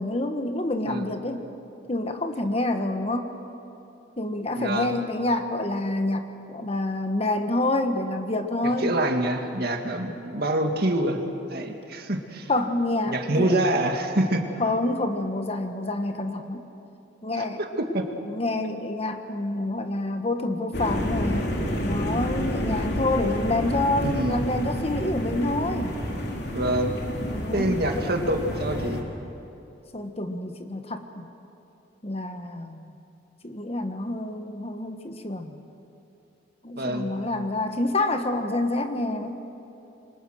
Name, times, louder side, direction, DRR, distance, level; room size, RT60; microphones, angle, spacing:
voice 1, 0.0-1.5 1.9-3.4 4.2-9.0 12.5-13.7 14.6-16.6 17.2-17.6 18.2-21.5 21.8-26.0 27.3-27.7 29.9-31.3 32.0-32.9 33.4-35.6 36.6-39.4, left 2 dB, 35° left, 6 dB, 1.3 m, -27 dB
voice 2, 4.5-5.0 8.6-11.2 11.5-12.5 13.1-14.4 17.4-17.7 17.9-18.1 24.0-24.5 26.5-27.0 27.5-29.0 36.8-37.1, right 1 dB, 55° right, 4 dB, 2.1 m, -26 dB
sound 1, 20.7-29.0, equal, 60° left, 3.4 m, -29 dB
27.5 x 24.0 x 6.4 m, 2.8 s
head